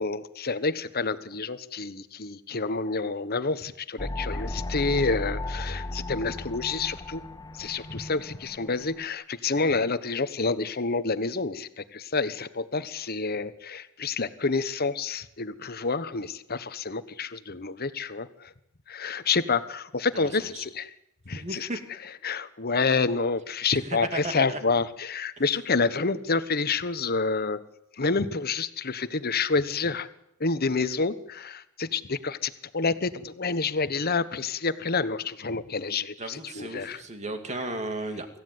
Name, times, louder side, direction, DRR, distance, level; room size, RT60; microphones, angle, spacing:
voice 1, 0.0-7.2 7.5-18.5 18.9-20.9 21.3-21.7 22.2-27.6 28.0-30.1 30.4-37.0, left 4 dB, 45° left, 13 dB, 1.2 m, -28 dB
sound 1, 4.0-9.1, left 2 dB, 20° left, 0.8 m, -35 dB
voice 2, 20.1-20.6 21.3-21.8 23.8-24.6 36.2-38.3, right 2 dB, 35° right, 7 dB, 2.5 m, -35 dB
25.0 x 15.0 x 9.5 m, 0.81 s
head